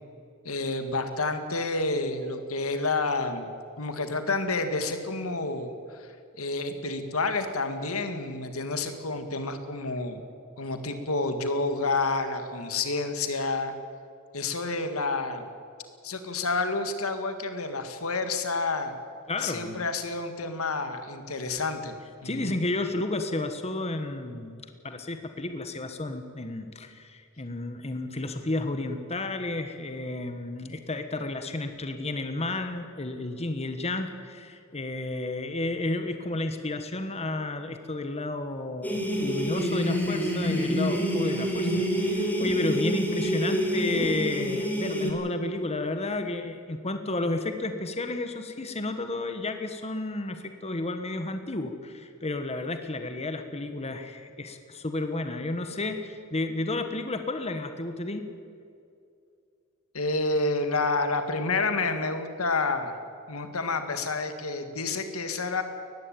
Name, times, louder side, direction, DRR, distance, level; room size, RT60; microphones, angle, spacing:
voice 1, 0.5-3.5 3.8-6.1 6.4-10.2 10.6-13.7 14.3-15.5 16.0-18.9 19.4-21.9 22.2-22.5 59.9-62.9 63.3-65.6, left 3 dB, 85° left, 8 dB, 2.1 m, -29 dB
voice 2, 19.3-19.9 22.2-58.2, left 2 dB, 30° left, 7 dB, 1.3 m, -32 dB
sound 1, 38.8-45.1, equal, 10° left, 3.2 m, -27 dB
19.5 x 15.0 x 9.1 m, 2.4 s
head